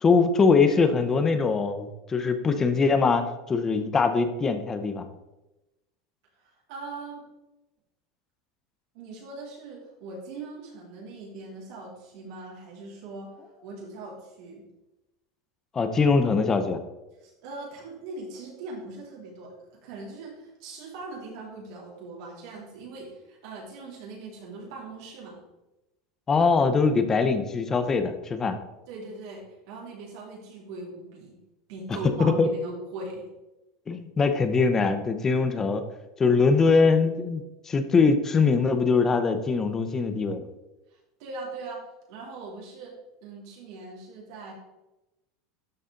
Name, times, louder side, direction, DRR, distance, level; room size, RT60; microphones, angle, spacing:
voice 1, 0.0-5.1 15.7-16.8 26.3-28.6 32.4-32.5 33.9-35.8 36.2-40.4, left 4 dB, 20° left, 9 dB, 0.7 m, -22 dB
voice 2, 6.4-7.2 8.9-13.3 13.6-14.6 17.2-19.5 19.8-25.4 28.9-31.4 31.7-33.2 40.9-41.8 42.1-42.9 43.2-44.5, right 3 dB, 65° right, -4 dB, 3.0 m, -40 dB
12.0 x 4.1 x 3.8 m, 0.99 s
supercardioid pair, 155°, 2 cm